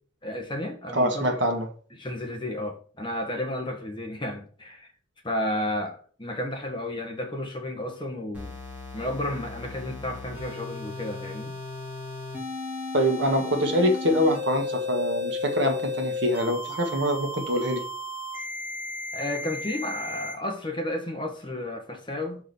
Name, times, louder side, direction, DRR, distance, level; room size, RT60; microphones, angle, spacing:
voice 1, 0.2-1.4 2.0-4.9 5.2-8.5 8.9-11.5 19.1-22.4, left 1 dB, 25° left, 1.2 m, -32 dB
voice 2, 0.9-1.7 12.9-17.8, equal, 60° right, 1.6 m, -24 dB
sound 1, 8.3-20.3, left 3 dB, 10° right, 2.6 m, -34 dB
6.3 x 4.8 x 5.4 m
head